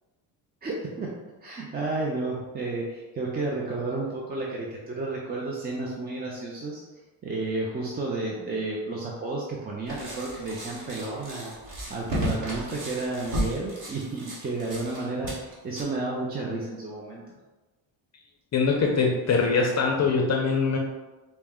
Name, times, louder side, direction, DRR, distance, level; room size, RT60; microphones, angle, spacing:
voice 1, 0.6-1.1 1.4-17.2 20.0-20.1, right 2 dB, 20° right, -3 dB, 0.3 m, -32 dB
sound 1, 9.9-15.8, right 1 dB, 40° right, 1.3 m, -34 dB
voice 2, 18.5-20.8, left 4 dB, 35° left, 0 dB, 0.5 m, -23 dB
4.1 x 2.0 x 3.5 m, 1.2 s
cardioid pair, 110°, 47 cm